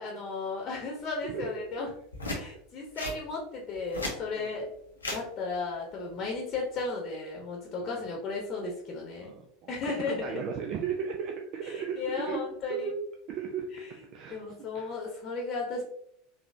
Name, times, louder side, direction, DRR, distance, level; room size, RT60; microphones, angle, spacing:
voice 1, 0.0-1.9 2.3-4.7 5.1-9.3 9.7-10.4 11.6-12.9 13.7-15.8, left 3 dB, 40° left, -1 dB, 0.9 m, -35 dB
voice 2, 1.2-1.6 4.3-4.5 7.8-8.0 9.2-12.4 12.7-13.0 13.3-13.7 14.1-14.9, right 7 dB, 45° right, 2 dB, 0.4 m, -36 dB
sound 1, 2.1-2.4 3.0-3.2 3.8-4.2 5.0-5.2 6.5-6.8, left 2 dB, 80° left, 0.8 m, -34 dB
3.9 x 2.7 x 2.6 m, 0.70 s
figure-of-eight pair, 80°, 0 cm